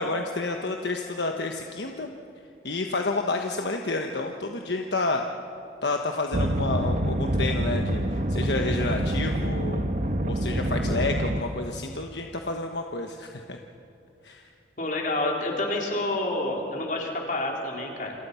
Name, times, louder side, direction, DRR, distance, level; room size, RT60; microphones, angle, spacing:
voice 1, 0.0-2.1 2.6-5.2 5.8-9.8 10.2-13.6 14.2-14.4, left 3 dB, 70° left, 3 dB, 1.3 m, -30 dB
sound 1, 6.3-11.4, right 1 dB, 45° right, 1.3 m, -26 dB
voice 2, 14.8-18.1, left 2 dB, 50° left, 0 dB, 4.3 m, -28 dB
29.0 x 27.0 x 5.8 m, 2.6 s
head